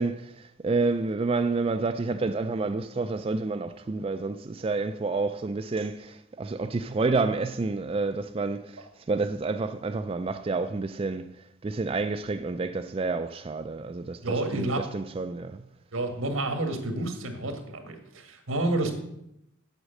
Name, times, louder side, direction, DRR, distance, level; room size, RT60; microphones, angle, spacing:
voice 1, 0.0-8.8 9.1-11.3 11.6-15.6, right 3 dB, 30° right, 0.3 m, -29 dB
voice 2, 14.2-14.8 15.9-18.9, right 2 dB, 90° right, 1.7 m, -29 dB
8.0 x 7.3 x 6.5 m
head